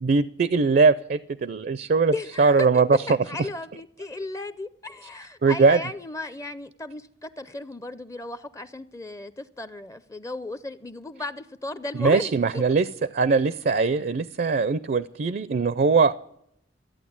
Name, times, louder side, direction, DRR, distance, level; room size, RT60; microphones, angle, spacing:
voice 1, 0.0-3.0 3.4-3.5 5.4-5.8 11.9-16.1, right 4 dB, 50° right, 16 dB, 0.4 m, -21 dB
voice 2, 2.1-12.6, left 2 dB, 15° left, 13 dB, 0.5 m, -35 dB
14.0 x 8.8 x 8.6 m, 0.74 s
head